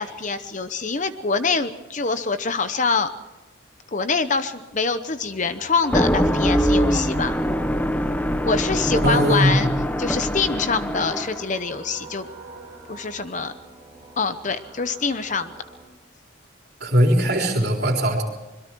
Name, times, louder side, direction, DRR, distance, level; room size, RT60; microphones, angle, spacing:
voice 1, 0.0-3.1 3.9-7.4 8.4-9.7 10.0-12.3 12.9-13.5 14.2-15.5, left 4 dB, 35° left, 11 dB, 0.8 m, -25 dB
sound 1, 5.2-15.8, right 2 dB, 15° right, 7.0 m, -45 dB
sound 2, 5.8-11.5, equal, 10° left, 0.7 m, -23 dB
voice 2, 9.0-9.6 16.8-18.2, equal, 50° right, 1 dB, 3.9 m, -19 dB
26.0 x 22.0 x 4.6 m, 1.1 s
head